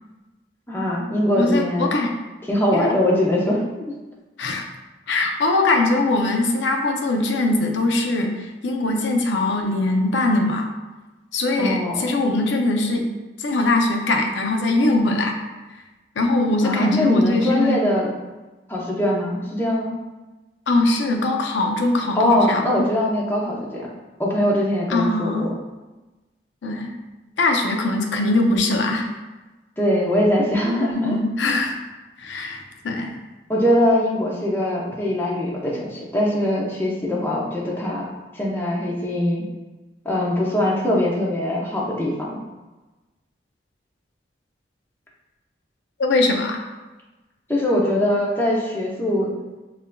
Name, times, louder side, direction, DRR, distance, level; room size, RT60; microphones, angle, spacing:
voice 1, 0.7-1.9 2.5-3.9 11.6-12.2 16.6-18.1 18.7-20.0 22.1-23.9 24.2-25.5 29.8-31.2 33.5-38.1 38.3-39.4 40.0-42.4 47.5-49.3, left 1 dB, 10° left, -4 dB, 0.6 m, -22 dB
voice 2, 1.4-2.2 2.7-3.0 4.4-4.6 5.1-10.7 11.3-13.1 13.4-15.4 16.2-17.8 20.7-22.6 24.9-25.5 26.6-26.9 27.4-29.1 30.9-31.8 32.2-33.2 46.0-46.6, left 2 dB, 85° left, 3 dB, 0.5 m, -21 dB
5.4 x 2.6 x 2.2 m, 1.2 s
head